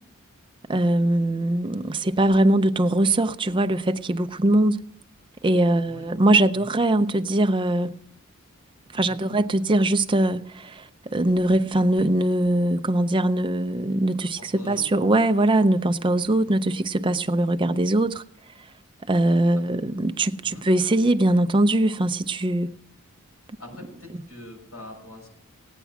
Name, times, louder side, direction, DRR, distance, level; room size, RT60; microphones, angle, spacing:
voice 1, 0.7-4.8 5.4-7.9 8.9-18.2 19.1-22.7, right 1 dB, 20° right, 0.5 m, -21 dB
voice 2, 9.0-9.3 14.4-14.9 19.5-19.6 20.4-20.7 23.6-25.3, left 1 dB, 85° left, 6.2 m, -43 dB
17.5 x 9.2 x 6.0 m
head